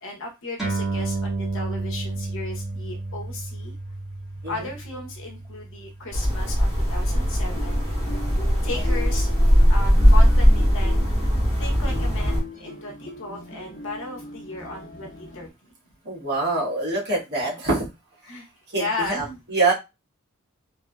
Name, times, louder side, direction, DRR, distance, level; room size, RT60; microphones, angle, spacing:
voice 1, 0.0-3.7 4.5-7.9 8.6-9.3 9.7-11.1 11.6-15.5 17.5-17.6 18.2-18.5 18.7-19.4, left 2 dB, 60° left, 0 dB, 0.8 m, -35 dB
sound 1, 0.6-7.4, right 3 dB, ahead, 1.3 m, -32 dB
sound 2, 6.1-12.4, equal, 30° right, 1.7 m, -19 dB
sound 3, 7.4-15.5, left 3 dB, 40° left, 1.1 m, -39 dB
voice 2, 16.0-17.9 18.7-19.2 19.5-19.7, right 3 dB, 50° right, -3 dB, 1.2 m, -24 dB
3.1 x 2.6 x 2.2 m, 0.24 s
head